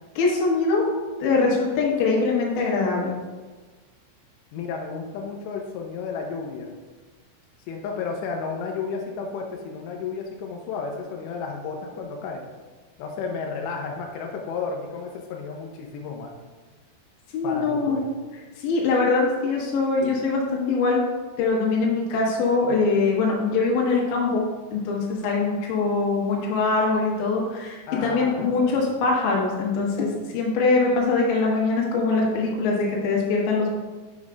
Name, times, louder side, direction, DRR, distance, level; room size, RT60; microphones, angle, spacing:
voice 1, 0.2-0.9 1.2-3.1 17.3-18.1 18.6-21.0 21.4-24.4 24.7-33.7, left 3 dB, 70° left, -3 dB, 3.4 m, -23 dB
voice 2, 4.5-6.7 7.7-12.4 13.0-16.3 17.4-18.0 27.9-28.7, left 5 dB, 90° left, 1 dB, 2.5 m, -32 dB
8.1 x 6.2 x 2.4 m, 1.3 s
omnidirectional pair, 5.7 m